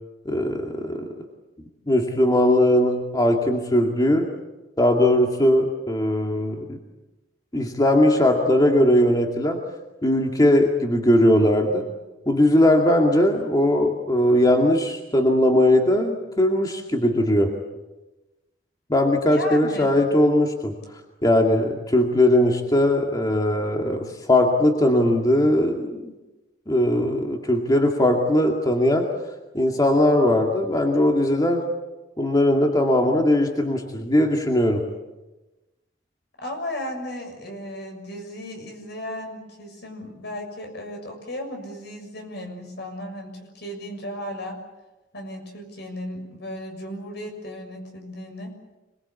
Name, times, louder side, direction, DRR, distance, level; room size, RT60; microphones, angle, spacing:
voice 1, 0.3-1.1 1.9-4.3 4.8-6.8 7.5-9.6 10.0-11.8 12.3-17.5 18.9-20.8 21.2-26.1 26.7-29.1 29.5-31.6 32.2-34.8, left 1 dB, 20° left, 1 dB, 2.3 m, -19 dB
voice 2, 19.3-19.9 36.4-44.6 45.1-48.6, left 1 dB, 65° left, 4 dB, 6.8 m, -35 dB
26.5 x 21.5 x 8.4 m, 1.1 s
head